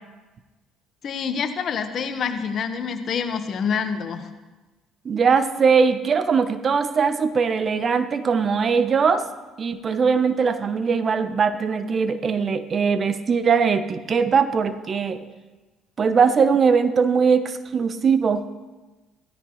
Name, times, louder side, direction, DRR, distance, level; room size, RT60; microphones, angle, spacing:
voice 1, 1.0-4.3, left 6 dB, 55° left, 7 dB, 1.4 m, -27 dB
voice 2, 5.0-9.3 9.6-15.2 16.0-18.4, right 5 dB, 40° right, 11 dB, 0.9 m, -20 dB
16.5 x 13.5 x 3.2 m, 1.2 s
supercardioid pair, 80°, 0 cm